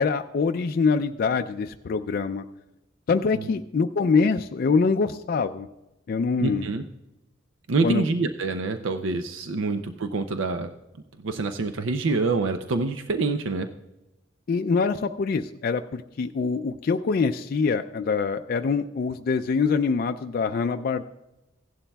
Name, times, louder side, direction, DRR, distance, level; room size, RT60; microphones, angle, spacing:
voice 1, 0.0-2.4 3.1-5.7 6.1-6.7 7.8-8.1 14.5-21.0, left 4 dB, 50° left, 7 dB, 0.3 m, -24 dB
voice 2, 6.4-6.8 7.7-10.7 11.2-13.7, right 3 dB, 85° right, 8 dB, 0.5 m, -26 dB
16.0 x 11.5 x 2.3 m, 0.97 s
head